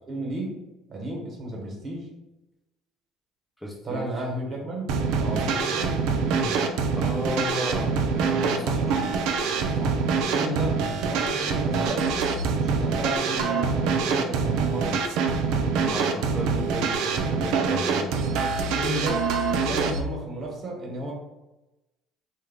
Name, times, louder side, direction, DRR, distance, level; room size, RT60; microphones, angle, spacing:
voice 1, 0.1-0.5 0.9-2.1 3.8-4.9 5.2-6.6 9.7-12.1 12.5-15.0 18.7-21.1, right 1 dB, 45° right, -1 dB, 1.2 m, -33 dB
voice 2, 3.6-4.2 7.0-9.0 15.6-18.5, left 1 dB, 10° left, -3 dB, 0.8 m, -34 dB
sound 1, 4.9-20.0, right 5 dB, 75° right, 0.4 m, -25 dB
3.1 x 2.2 x 3.5 m, 1.0 s
supercardioid pair, 80°, 0 cm